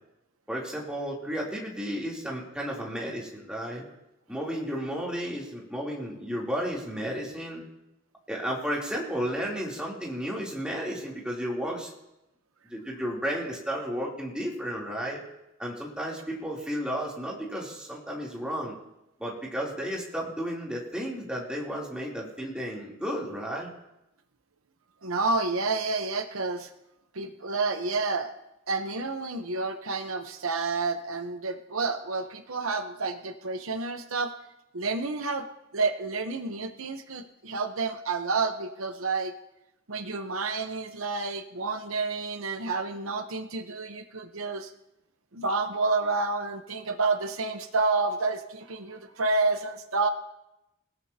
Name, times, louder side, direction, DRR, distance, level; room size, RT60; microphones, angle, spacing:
voice 1, 0.5-3.8 4.3-7.6 8.3-11.9 12.6-15.2 15.6-18.7 19.2-23.7, equal, 5° right, -4 dB, 3.4 m, -33 dB
voice 2, 25.0-26.7 27.1-28.3 28.7-34.3 34.7-35.5 35.7-39.3 39.9-44.7 45.3-50.1, right 3 dB, 85° right, 7 dB, 1.0 m, -29 dB
28.0 x 17.0 x 2.9 m, 0.89 s
head